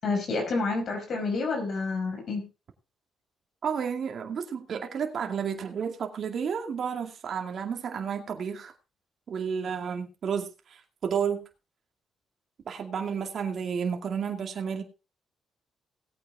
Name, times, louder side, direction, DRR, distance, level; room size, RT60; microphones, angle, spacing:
voice 1, 0.0-2.5, left 3 dB, 65° left, 2 dB, 5.4 m, -29 dB
voice 2, 3.6-8.7 9.3-11.4 12.7-14.8, right 7 dB, 60° right, 3 dB, 2.3 m, -31 dB
18.5 x 8.8 x 3.7 m, 0.31 s
cardioid pair, 70°, 0 cm